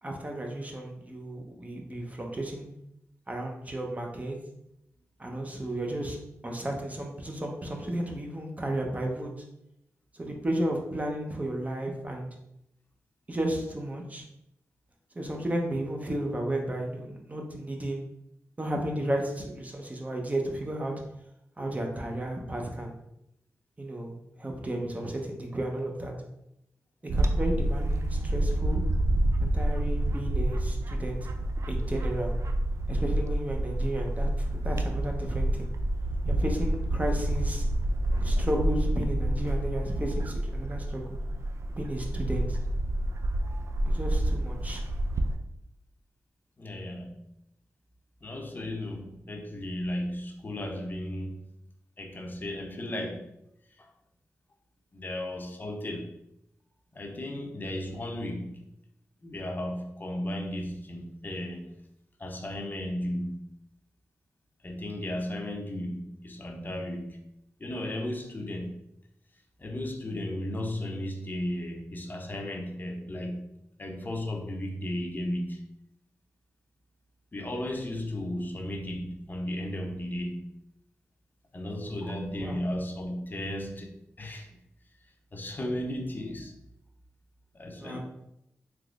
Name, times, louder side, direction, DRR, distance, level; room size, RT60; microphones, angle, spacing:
voice 1, 0.0-2.7 3.3-4.4 5.2-6.2 6.4-9.3 10.1-12.3 13.3-14.2 15.1-18.0 18.6-20.9 21.6-22.9 23.8-26.1 27.1-28.8 29.4-31.2 31.7-32.3 32.9-35.7 36.3-37.7 38.2-41.2 41.8-42.6 43.8-44.8 82.4-82.6 87.8-88.0, right 1 dB, 25° right, 1 dB, 0.8 m, -33 dB
Bird / Wind, 27.1-45.4, right 1 dB, 60° right, 0.4 m, -28 dB
voice 2, 46.6-47.1 48.2-51.4 52.0-53.3 53.8-53.9 54.9-56.2 56.9-58.6 59.2-61.7 62.2-63.5 64.6-67.2 67.6-68.8 69.6-75.7 77.3-80.5 81.5-84.5 85.3-86.6 87.5-88.0, left 1 dB, 35° left, 3 dB, 0.6 m, -35 dB
3.5 x 3.0 x 2.4 m, 0.81 s
cardioid pair, 55°, 6 cm